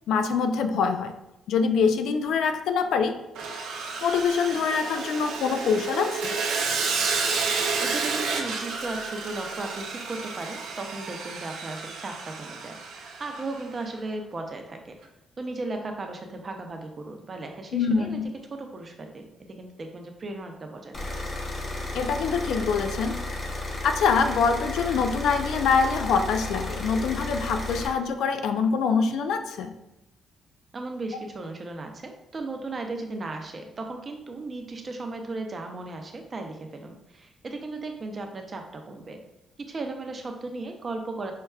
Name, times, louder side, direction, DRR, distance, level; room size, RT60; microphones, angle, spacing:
voice 1, 0.1-1.2 1.5-3.2 4.0-6.4 17.7-18.3 21.9-23.2 23.8-29.8, left 5 dB, 80° left, 7 dB, 0.3 m, -24 dB
Sawing, 3.4-13.6, right 4 dB, 85° right, 0.4 m, -31 dB
voice 2, 7.8-15.0 15.4-18.2 18.5-19.3 19.6-21.2 30.7-39.2 39.6-41.3, right 2 dB, 35° right, 4 dB, 0.5 m, -36 dB
sound 1, 20.9-27.9, left 2 dB, 35° left, 0.8 m, -33 dB
5.5 x 2.2 x 2.3 m, 0.91 s
cardioid pair, 90°, 0 cm